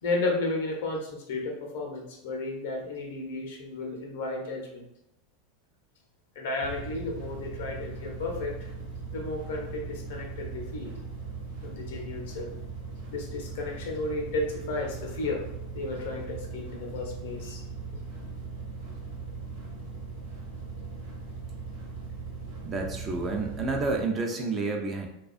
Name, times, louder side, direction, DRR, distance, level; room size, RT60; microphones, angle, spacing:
voice 1, 0.0-4.8 6.4-8.7 9.1-10.9 11.6-12.5 13.1-15.4 15.7-17.6, left 2 dB, 70° left, 0 dB, 0.6 m, -33 dB
sound 1, 6.6-24.0, right 4 dB, 75° right, 0.7 m, -39 dB
voice 2, 22.6-25.1, right 3 dB, 35° right, 2 dB, 0.5 m, -29 dB
2.3 x 2.2 x 2.4 m, 0.82 s
hypercardioid pair, 90°, 0 cm